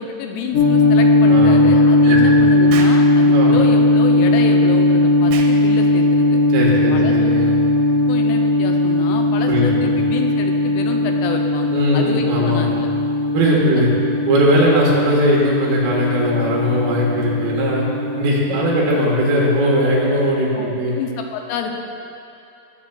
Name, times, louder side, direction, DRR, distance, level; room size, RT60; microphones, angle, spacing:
voice 1, 0.0-6.4 6.9-7.2 8.1-12.9 18.5-18.7 20.5-21.8, left 6 dB, 85° left, 3 dB, 2.7 m, -29 dB
sound 1, 0.5-20.1, left 2 dB, 65° left, 2.8 m, -17 dB
voice 2, 1.3-1.7 2.1-2.4 3.3-3.6 6.5-7.5 9.5-10.0 11.7-12.8 13.3-13.9 14.3-17.8 18.1-20.9, equal, 70° right, -4 dB, 3.1 m, -19 dB
Explosion, 2.7-3.1 5.3-5.6, right 5 dB, 90° right, 1.9 m, -30 dB
17.0 x 7.7 x 2.3 m, 2.7 s
omnidirectional pair, 4.7 m